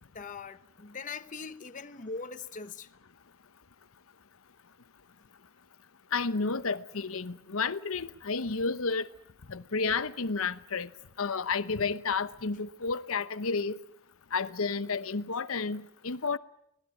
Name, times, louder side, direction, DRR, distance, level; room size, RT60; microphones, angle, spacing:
voice 1, 0.1-2.9, left 4 dB, 35° left, 0.9 m, -41 dB
voice 2, 6.1-9.1 9.5-10.9 11.2-13.8 14.3-16.4, left 4 dB, 65° left, 0.9 m, -31 dB
25.0 x 18.5 x 9.6 m
head